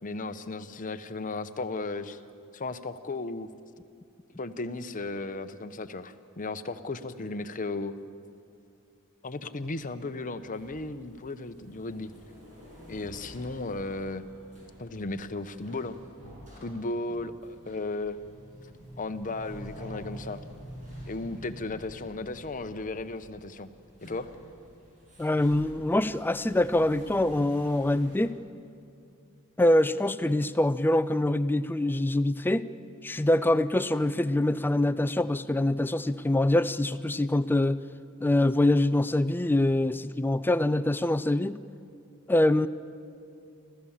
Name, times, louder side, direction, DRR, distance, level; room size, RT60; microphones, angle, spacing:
voice 1, 0.0-2.2 2.5-3.5 4.4-7.9 9.2-12.1 12.9-14.2 14.8-16.0 16.6-18.2 19.0-20.4 21.0-23.7 24.0-24.3, left 2 dB, 40° left, 9 dB, 0.8 m, -35 dB
sound 1, 9.6-28.2, equal, 35° right, 7.7 m, -48 dB
voice 2, 25.2-28.3 29.6-32.7 33.0-37.8 38.2-41.6 42.3-42.7, left 1 dB, 10° left, 14 dB, 0.4 m, -24 dB
29.5 x 14.0 x 7.3 m, 2.4 s
head